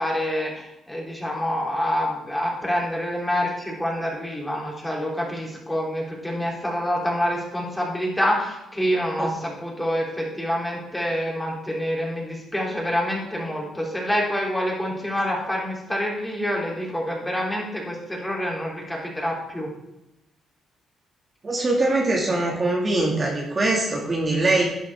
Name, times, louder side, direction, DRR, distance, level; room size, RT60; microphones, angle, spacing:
voice 1, 0.0-19.7, equal, 10° left, -3 dB, 3.3 m, -27 dB
voice 2, 21.4-24.6, right 2 dB, 35° right, -2 dB, 2.2 m, -22 dB
11.5 x 8.4 x 3.6 m, 0.90 s
cardioid pair, 90°, 0 cm